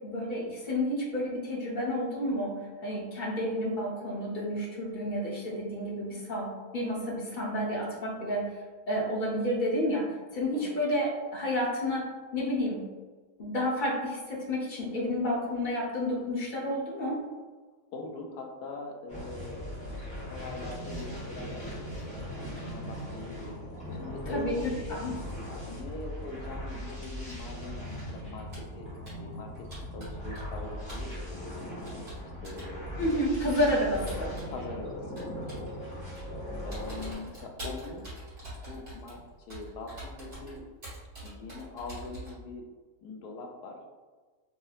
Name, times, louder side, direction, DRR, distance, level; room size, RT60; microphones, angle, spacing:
voice 1, 0.0-8.5 8.9-12.9 13.4-17.2 24.3-25.1 33.0-34.3, left 1 dB, 45° left, -3 dB, 0.6 m, -30 dB
voice 2, 17.9-19.6 20.0-21.9 22.4-23.6 24.0-25.0 25.7-28.5 28.7-28.9 29.2-29.7 29.9-31.6 32.4-33.1 34.0-34.2 34.5-36.0 36.6-38.1 38.7-40.6 41.2-42.6 43.0-43.8, left 3 dB, 80° left, 2 dB, 1.1 m, -42 dB
sound 1, 19.1-37.2, equal, 5° left, 1.0 m, -39 dB
Computer keyboard, 28.5-28.8 29.1-29.3 29.7-30.6 30.9-31.1 31.8-32.7 33.5-34.6 35.2-35.7 36.1-36.4 36.7-42.4, right 1 dB, 50° right, 2.0 m, -44 dB
4.2 x 2.7 x 2.4 m, 1.4 s
omnidirectional pair, 1.8 m